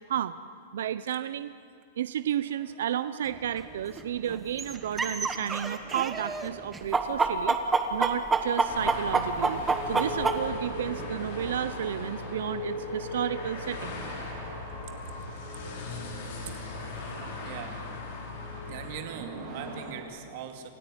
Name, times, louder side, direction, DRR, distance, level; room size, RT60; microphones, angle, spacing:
voice 1, 0.7-1.5 2.0-7.6 7.9-14.0, right 10 dB, 75° right, 13 dB, 0.7 m, -32 dB
sound 1, 2.4-20.0, equal, 25° right, 7.9 m, -43 dB
sound 2, 3.3-3.4 4.0-4.1 4.3-6.5 6.7-10.4, right 4 dB, 10° right, 1.2 m, -26 dB
sound 3, 8.7-19.0, left 4 dB, 50° left, 5.6 m, -40 dB
voice 2, 17.4-17.9 18.6-20.7, right 8 dB, 45° right, 5 dB, 2.5 m, -41 dB
27.5 x 16.0 x 9.9 m, 2.4 s
supercardioid pair, 175°, 0 cm